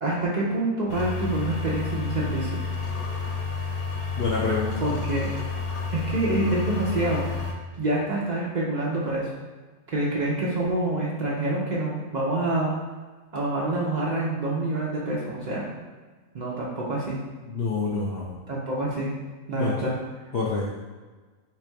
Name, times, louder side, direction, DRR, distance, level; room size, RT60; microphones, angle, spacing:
voice 1, 0.0-2.6 4.8-5.3 5.9-7.3 7.8-9.3 9.9-12.7 13.3-15.7 16.3-17.2 18.5-19.1 19.5-20.0, right 2 dB, 65° right, -5 dB, 0.4 m, -26 dB
sound 1, 0.9-7.5, left 4 dB, 85° left, 1.1 m, -30 dB
voice 2, 4.2-4.7 17.5-18.3 19.5-19.9 20.3-20.7, left 4 dB, 65° left, -4 dB, 0.5 m, -27 dB
3.2 x 2.6 x 4.5 m, 1.3 s
omnidirectional pair, 1.5 m